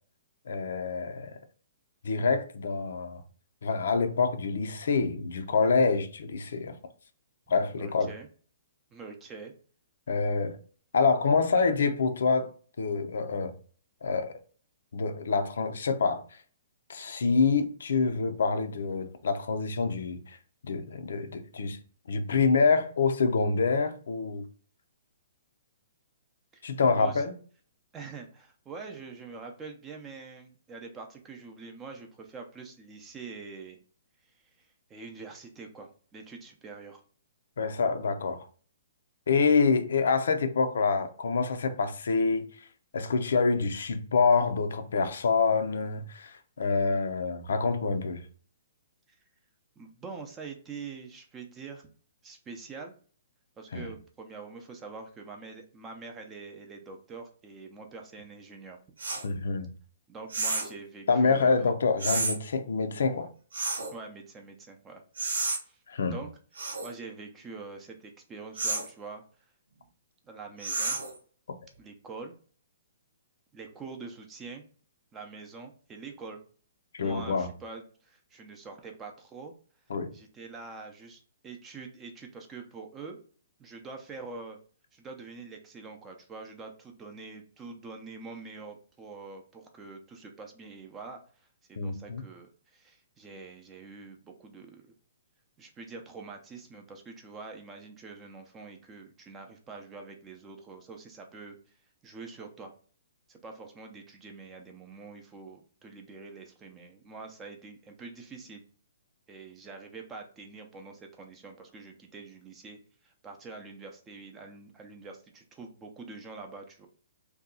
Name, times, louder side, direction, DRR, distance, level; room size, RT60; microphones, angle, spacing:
voice 1, 0.5-1.3 2.0-3.2 3.6-6.7 7.5-8.1 10.1-10.6 10.9-12.5 12.8-13.5 14.0-14.3 14.9-16.2 16.9-20.4 20.6-21.8 22.1-24.5 26.6-27.3 37.6-38.5 39.3-42.5 42.9-48.2 53.7-53.9 59.2-59.7 61.1-63.3 65.9-66.2 76.9-77.5 79.9-80.1 91.8-92.2, left 4 dB, 75° left, 0.5 m, -26 dB
voice 2, 7.8-8.3 8.9-9.5 26.5-26.7 26.9-27.3 27.9-33.8 34.6-37.0 49.8-51.9 52.2-52.9 53.6-58.8 60.1-61.7 63.9-65.0 65.6-66.3 66.8-69.2 70.3-71.0 71.8-72.3 73.5-74.6 75.1-76.4 77.0-79.5 80.1-83.2 83.6-84.6 84.9-91.2 91.7-94.9 95.6-101.7 102.0-102.7 103.3-108.6 109.3-116.9, right 4 dB, 15° right, 0.5 m, -45 dB
sound 1, 59.0-59.3 60.3-60.8 62.0-62.4 63.5-63.9 65.2-65.6 66.6-66.9 68.6-68.9 70.6-71.2, right 3 dB, 85° right, 0.8 m, -30 dB
2.7 x 2.3 x 3.7 m
hypercardioid pair, 155°, 0 cm